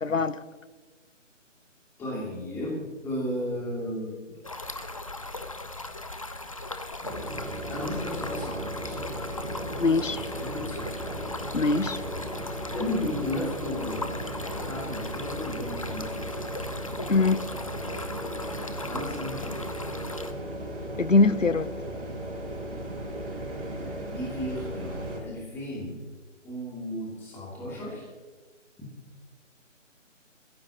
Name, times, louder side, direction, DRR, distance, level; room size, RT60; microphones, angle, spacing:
voice 1, 0.0-0.4 9.8-10.2 11.5-12.0 17.1-17.4 21.0-21.7, left 3 dB, 85° left, 0.9 m, -22 dB
voice 2, 2.0-4.1 6.9-7.1 7.7-9.3 9.9-10.9 12.7-14.2 14.5-16.3 18.8-19.5 23.8-26.0 26.4-28.0, left 1 dB, 5° left, 2.6 m, -34 dB
Stream, 4.4-20.3, left 2 dB, 25° left, 0.6 m, -38 dB
sound 1, 7.0-25.2, right 1 dB, 50° right, 5.1 m, -36 dB
23.0 x 15.5 x 2.9 m
figure-of-eight pair, 150°, 38 cm